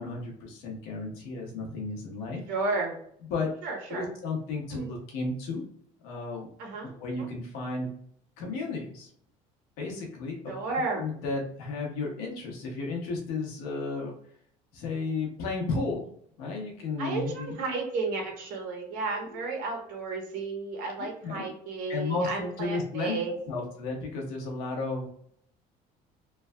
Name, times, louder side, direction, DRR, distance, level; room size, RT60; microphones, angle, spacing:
voice 1, 0.0-2.4 3.3-3.5 3.9-5.6 6.0-6.5 7.0-7.9 8.4-9.1 9.8-10.5 10.9-14.1 14.7-16.0 16.4-17.5 21.0-21.5 21.9-23.2 23.5-25.1, left 3 dB, 85° left, 0 dB, 1.0 m, -33 dB
voice 2, 2.5-3.0 3.6-4.1 4.7-4.9 6.6-6.9 7.2-7.3 10.5-11.1 17.0-23.4, right 3 dB, 70° right, 1 dB, 1.0 m, -33 dB
3.2 x 2.3 x 2.2 m, 0.65 s
cardioid pair, 150°, 15 cm